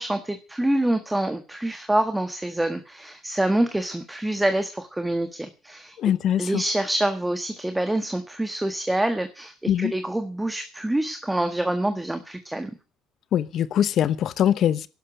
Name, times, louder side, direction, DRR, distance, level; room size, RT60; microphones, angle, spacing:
voice 1, 0.0-6.0 6.4-12.7, right 1 dB, 10° right, 1.5 m, -26 dB
voice 2, 6.0-6.6 9.7-9.9 13.3-14.9, left 10 dB, 60° left, 0.9 m, -22 dB
11.5 x 11.0 x 9.1 m
cardioid pair, 100°, 0 cm